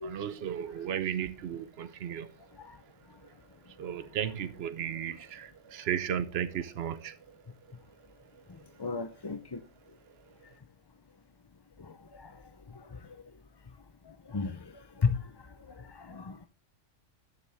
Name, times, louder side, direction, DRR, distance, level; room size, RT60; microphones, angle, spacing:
voice 1, 0.0-2.3 3.8-7.4 8.3-8.4, right 9 dB, 60° right, 1.0 m, -35 dB
voice 2, 8.8-9.4 14.3-14.5 15.0-15.2 16.1-16.5, left 5 dB, 35° left, 0.4 m, -30 dB
12.5 x 7.0 x 3.5 m
omnidirectional pair, 1.3 m